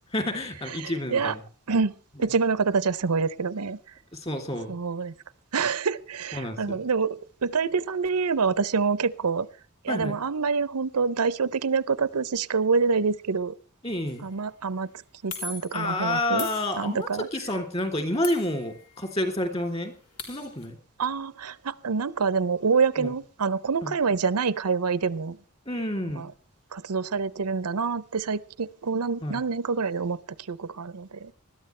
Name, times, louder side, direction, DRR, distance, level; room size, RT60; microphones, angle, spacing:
voice 1, 0.1-1.4 2.2-2.3 4.1-4.7 6.3-6.8 9.9-10.2 13.8-14.2 15.7-19.9 20.2-20.8 23.0-23.1 23.8-23.9 25.7-26.2 29.2-29.4, left 1 dB, 30° left, 6 dB, 3.1 m, -29 dB
voice 2, 0.8-1.3 1.7-3.8 4.7-5.1 5.5-7.2 7.4-9.5 9.8-13.5 14.2-14.9 15.2-16.5 16.8-17.3 21.0-25.4 26.1-26.3 26.7-30.2 30.5-31.3, right 5 dB, 90° right, 18 dB, 0.7 m, -26 dB
sound 1, 14.1-14.3 15.3-15.9 16.4-17.2 18.2-19.1 19.4-19.5 19.8-20.7, left 5 dB, 85° left, 3.7 m, -39 dB
20.0 x 13.5 x 3.3 m, 0.38 s
head